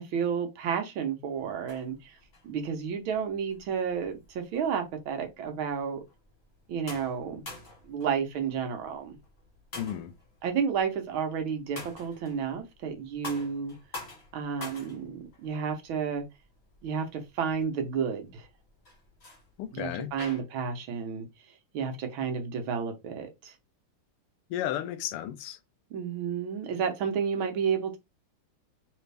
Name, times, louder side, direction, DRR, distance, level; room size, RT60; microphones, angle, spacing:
voice 1, 0.0-2.2 2.4-6.0 6.7-7.4 7.8-9.2 10.4-13.7 14.3-16.2 16.8-18.5 19.7-21.3 21.7-23.5 25.9-28.0, right 6 dB, 70° right, 1.5 m, -31 dB
sound 1, 1.3-20.4, left 2 dB, 35° left, 1.4 m, -47 dB
voice 2, 9.8-10.1 19.6-20.1 24.5-25.6, left 11 dB, 90° left, 1.5 m, -33 dB
3.4 x 3.4 x 3.2 m
omnidirectional pair, 2.4 m